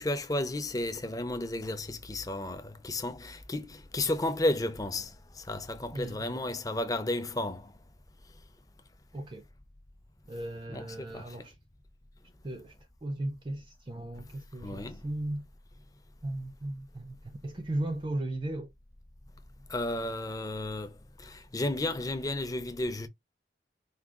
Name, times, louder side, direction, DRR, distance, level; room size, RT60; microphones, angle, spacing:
voice 1, 0.0-5.1 5.4-7.7 10.7-11.4 14.6-15.0 19.7-20.9 21.2-23.1, left 1 dB, 20° left, 0.6 m, -33 dB
voice 2, 5.9-6.4 9.1-9.4 10.3-11.6 12.4-12.8 13.0-15.5 16.2-18.7, right 1 dB, 25° right, 0.4 m, -36 dB
4.8 x 2.3 x 3.6 m
head